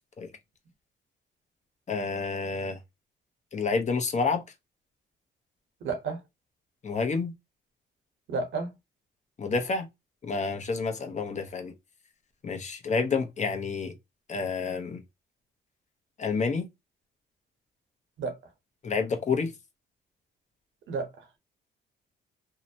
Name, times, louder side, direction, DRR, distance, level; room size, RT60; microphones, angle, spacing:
voice 1, 1.9-2.8 3.5-4.4 6.8-7.3 9.4-9.9 10.2-11.7 12.4-13.9 14.3-15.0 16.2-16.7 18.8-19.5, left 4 dB, 35° left, 0.7 m, -29 dB
voice 2, 5.8-6.2 8.3-8.7 18.2-18.4 20.9-21.4, right 4 dB, 75° right, 1.0 m, -32 dB
2.7 x 2.1 x 2.7 m
cardioid pair, 90°, 20 cm